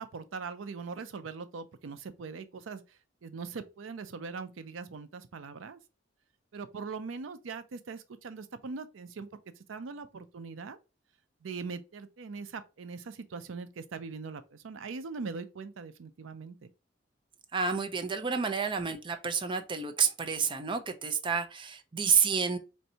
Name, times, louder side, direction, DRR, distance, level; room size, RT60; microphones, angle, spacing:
voice 1, 0.0-5.8 6.5-9.3 9.6-10.8 11.4-16.7, right 4 dB, 85° right, 0.5 m, -41 dB
voice 2, 17.5-22.6, right 6 dB, 25° right, 0.5 m, -29 dB
4.4 x 2.6 x 2.8 m
head